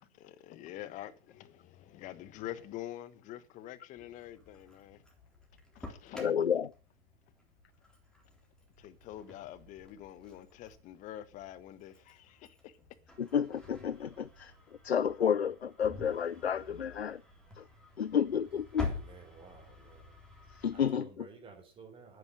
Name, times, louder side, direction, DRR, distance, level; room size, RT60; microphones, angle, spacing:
voice 1, 0.0-5.0 5.7-6.2 8.8-12.8, left 13 dB, 25° left, 1.2 m, -46 dB
Engine starting, 4.0-20.9, left 3 dB, ahead, 3.6 m, -48 dB
voice 2, 6.1-6.7 13.2-14.5 14.8-17.2 17.6-17.7 18.0-18.9 20.5-21.3, left 8 dB, 85° left, 0.7 m, -31 dB
voice 3, 18.8-20.2 20.7-22.2, right 5 dB, 15° right, 3.7 m, -53 dB
9.8 x 9.6 x 7.7 m
hypercardioid pair, 125°, 31 cm